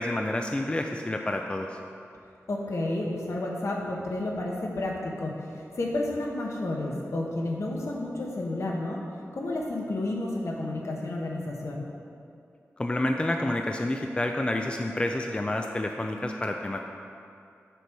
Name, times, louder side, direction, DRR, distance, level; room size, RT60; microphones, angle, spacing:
voice 1, 0.0-1.8 12.8-16.8, left 1 dB, 20° left, 3 dB, 0.4 m, -29 dB
voice 2, 2.5-9.0 9.3-11.8, left 2 dB, 65° left, -1 dB, 1.1 m, -31 dB
6.8 x 6.0 x 4.7 m, 2.5 s
wide cardioid pair, 85°, 5 cm